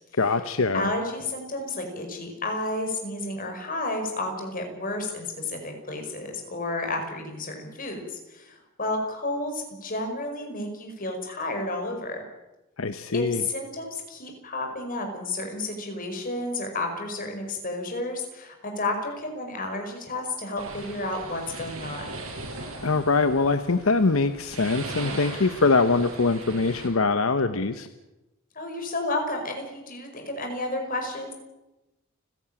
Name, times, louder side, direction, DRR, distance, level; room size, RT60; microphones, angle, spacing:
voice 1, 0.2-0.9 12.8-13.4 22.8-27.9, left 3 dB, 75° left, 10 dB, 0.9 m, -23 dB
voice 2, 0.7-12.2 13.1-22.1 28.6-31.3, left 2 dB, 40° left, 3 dB, 5.2 m, -31 dB
sound 1, 20.6-26.9, right 2 dB, 80° right, 5.5 m, -39 dB
30.0 x 11.0 x 8.8 m, 1.0 s
head